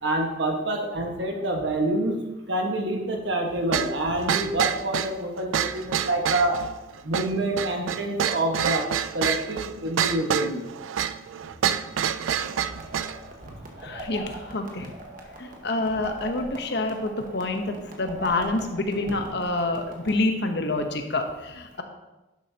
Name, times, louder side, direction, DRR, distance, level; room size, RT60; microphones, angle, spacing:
voice 1, 0.0-2.2 2.5-6.6 7.0-8.9 9.1-10.6 13.4-13.6 19.1-19.2, right 1 dB, 65° right, 2 dB, 1.4 m, -27 dB
sound 1, 3.7-13.2, right 9 dB, 85° right, 0.4 m, -27 dB
sound 2, 12.2-20.1, right 1 dB, 45° right, 1.3 m, -42 dB
voice 2, 13.8-14.9 15.4-21.8, left 2 dB, 60° left, 6 dB, 0.9 m, -27 dB
11.0 x 7.6 x 2.8 m, 1.0 s
head